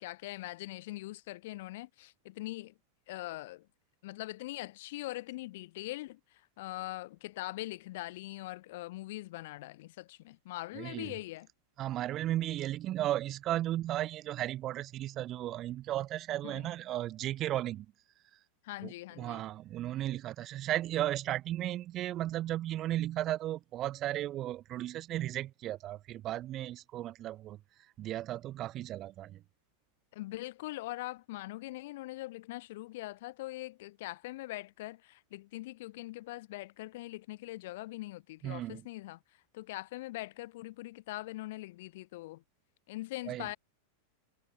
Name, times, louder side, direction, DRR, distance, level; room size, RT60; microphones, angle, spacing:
voice 1, 0.0-2.7 3.1-3.7 4.0-6.2 6.6-11.5 16.4-16.7 18.6-19.4 30.1-39.2 39.5-42.4 42.9-43.6, left 18 dB, 50° left, 3.1 m, -42 dB
voice 2, 10.7-11.1 11.8-17.9 18.8-27.6 28.0-29.4 38.4-38.8 43.3-43.5, right 13 dB, 35° right, 2.2 m, -35 dB
figure-of-eight pair, 90°, 0 cm